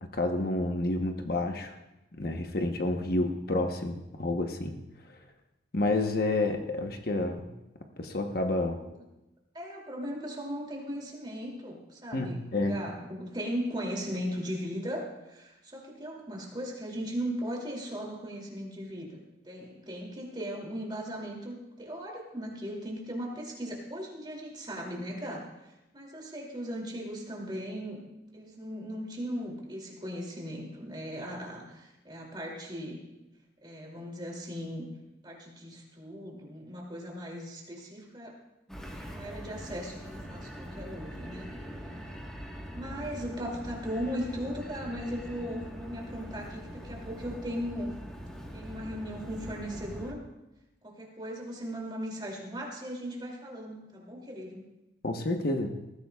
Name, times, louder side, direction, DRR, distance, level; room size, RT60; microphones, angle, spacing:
voice 1, 0.1-1.7 2.1-4.8 5.1-5.2 5.7-7.5 8.0-8.8 12.1-12.8 55.0-55.7, left 2 dB, 55° left, 4 dB, 1.0 m, -29 dB
voice 2, 9.5-19.2 19.4-25.4 25.9-28.0 28.3-33.0 33.6-34.9 35.2-38.4 39.0-41.5 42.7-47.9 48.5-50.2 50.8-54.6, equal, 25° right, -1 dB, 2.7 m, -38 dB
sound 1, 38.7-50.1, equal, 5° left, 1.3 m, -42 dB
19.5 x 15.0 x 2.4 m, 0.97 s
head